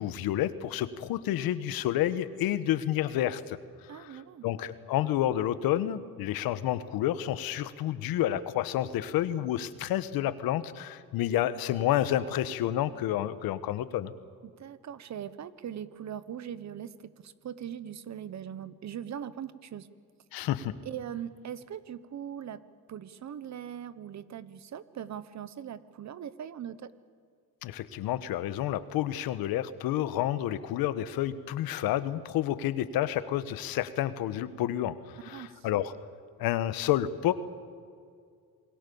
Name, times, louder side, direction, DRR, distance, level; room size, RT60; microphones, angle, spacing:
voice 1, 0.0-3.6 3.8-14.1 20.3-20.7 27.6-35.9 36.4-37.3, left 12 dB, 90° left, 13 dB, 1.3 m, -30 dB
voice 2, 3.9-4.4 14.4-19.9 20.8-22.6 22.9-26.9 35.3-35.7, right 9 dB, 50° right, 15 dB, 1.2 m, -40 dB
28.0 x 21.5 x 7.1 m, 2.2 s
cardioid pair, 105°, 35 cm